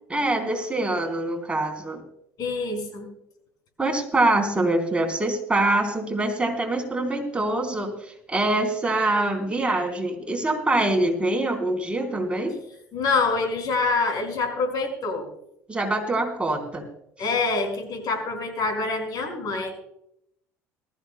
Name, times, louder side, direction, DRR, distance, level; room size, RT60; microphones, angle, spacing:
voice 1, 0.1-2.0 3.8-12.6 15.7-16.9 17.2-17.3, right 2 dB, 15° right, 3 dB, 3.8 m, -24 dB
voice 2, 2.4-3.1 12.9-15.3 17.2-19.7, left 4 dB, 55° left, 5 dB, 5.4 m, -26 dB
22.0 x 14.0 x 2.2 m, 0.76 s
hypercardioid pair, 70°, 8 cm